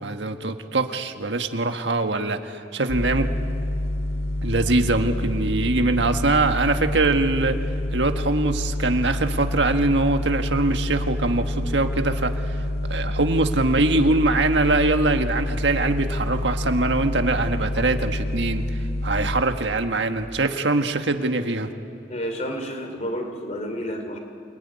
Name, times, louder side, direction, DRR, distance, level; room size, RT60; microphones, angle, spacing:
voice 1, 0.0-3.3 4.4-7.6 7.9-12.6 12.9-18.6 19.0-21.7, right 2 dB, 85° right, 6 dB, 1.5 m, -23 dB
sound 1, 2.9-19.4, left 1 dB, 65° left, 4.2 m, -27 dB
voice 2, 22.1-24.2, equal, 40° left, 5 dB, 3.0 m, -30 dB
27.5 x 20.5 x 9.9 m, 2.5 s
head